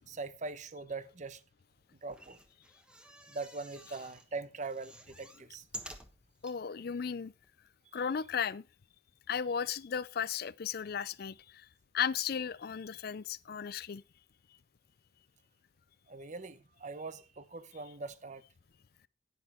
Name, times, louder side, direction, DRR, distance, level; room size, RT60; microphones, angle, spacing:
voice 1, 0.0-1.4 2.0-2.4 3.3-5.6 16.1-18.4, right 3 dB, 40° right, 0.8 m, -42 dB
sound 1, 2.0-4.3 4.6-6.6 7.1-7.2 7.4-7.5, equal, 5° right, 1.3 m, -50 dB
voice 2, 6.4-7.3 7.9-8.6 9.3-11.7 11.9-14.0, left 7 dB, 55° left, 0.4 m, -35 dB
10.5 x 9.5 x 4.3 m
head